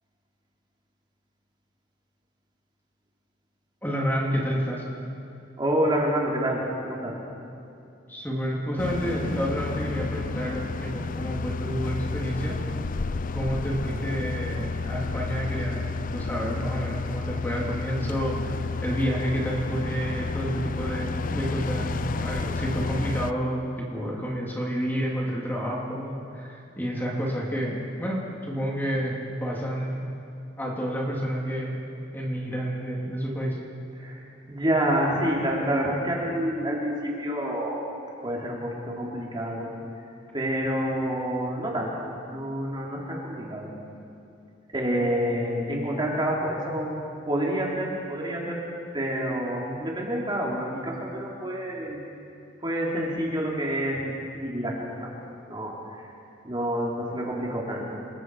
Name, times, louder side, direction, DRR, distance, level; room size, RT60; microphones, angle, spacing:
voice 1, 3.8-4.8 8.1-12.6 13.3-15.8 16.1-30.0 30.6-31.8 32.1-33.6, equal, 10° left, -4 dB, 3.2 m, -29 dB
voice 2, 5.6-7.2 33.9-37.8 38.2-39.7 40.3-43.7 44.7-47.0 47.3-48.6 48.9-52.0 52.6-54.1 54.4-55.1 55.5-56.1 56.4-58.0, equal, 25° right, -3 dB, 3.3 m, -28 dB
sound 1, 8.8-23.3, left 3 dB, 45° left, 0.5 m, -31 dB
29.0 x 21.5 x 4.9 m, 2.6 s
head